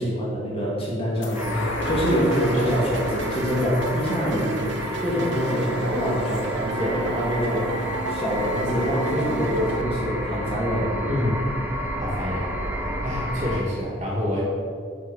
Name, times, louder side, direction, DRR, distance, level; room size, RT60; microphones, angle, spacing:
voice 1, 0.0-10.9, equal, 30° left, -5 dB, 2.0 m, -25 dB
sound 1, 1.2-8.0 8.4-8.5, left 2 dB, 80° left, 0.7 m, -35 dB
sound 2, 1.3-13.6, equal, 10° right, 0.7 m, -32 dB
voice 2, 1.5-1.9 2.5-3.0 4.8-4.9 11.0-11.3 12.0-12.5 13.0-14.4, left 1 dB, 25° right, -4 dB, 1.6 m, -28 dB
sound 3, 1.8-9.8, right 2 dB, 65° right, 0.6 m, -32 dB
6.5 x 6.3 x 5.5 m, 2.2 s
head